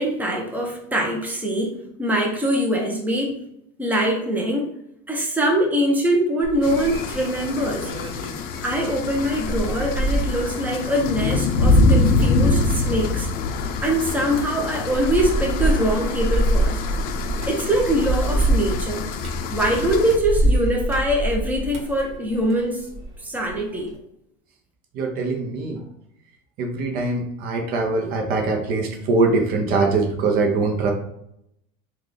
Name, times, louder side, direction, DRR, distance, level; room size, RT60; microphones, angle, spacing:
voice 1, 0.0-3.4 3.8-4.7 5.1-7.9 8.6-13.3 13.8-16.8 17.5-19.1 19.5-22.9 23.2-23.9, right 1 dB, 10° right, 0 dB, 0.9 m, -23 dB
sound 1, 6.4-23.1 23.5-23.9, right 1 dB, 35° right, 1.4 m, -26 dB
sound 2, 6.6-20.2, left 3 dB, 55° left, 0.5 m, -24 dB
voice 2, 24.9-25.8 26.6-30.9, right 3 dB, 55° right, 3 dB, 0.7 m, -22 dB
3.6 x 2.4 x 3.3 m, 0.77 s
supercardioid pair, 110°, 18 cm